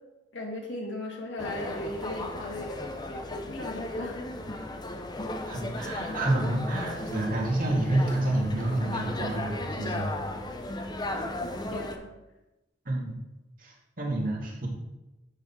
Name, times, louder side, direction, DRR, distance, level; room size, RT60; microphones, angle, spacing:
voice 1, 0.3-4.3 4.6-4.7 11.1-12.1, left 1 dB, 75° left, 0 dB, 1.8 m, -38 dB
sound 1, 1.4-12.0, left 1 dB, 20° left, 0.7 m, -35 dB
voice 2, 5.5-10.1 12.9-13.1 13.6-14.7, right 1 dB, 50° right, -3 dB, 2.2 m, -29 dB
11.5 x 4.2 x 4.5 m, 1.0 s
head